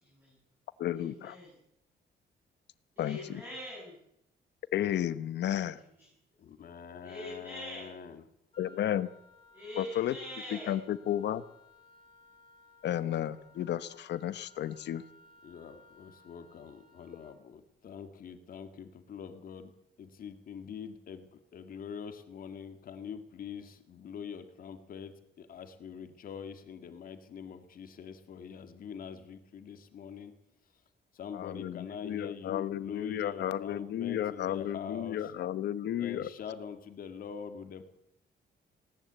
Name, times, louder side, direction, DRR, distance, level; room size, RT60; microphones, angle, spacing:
voice 1, 0.0-0.4 0.9-1.5 3.0-4.0 5.5-5.7 7.0-7.9 9.5-10.8, left 1 dB, 10° right, -5 dB, 7.8 m, -44 dB
voice 2, 0.8-1.4 3.0-3.4 4.7-5.8 8.6-9.1 9.8-10.2 10.5-11.4 12.8-15.0 31.3-36.3, left 11 dB, 70° left, 14 dB, 1.2 m, -33 dB
voice 3, 6.4-8.2 15.4-30.4 31.1-35.3 36.0-37.8, left 7 dB, 50° left, 8 dB, 2.0 m, -44 dB
Wind instrument woodwind instrument, 8.5-17.4, left 2 dB, 25° left, 5.0 m, -60 dB
19.5 x 18.0 x 8.1 m, 0.78 s
cardioid pair, 180°, 18 cm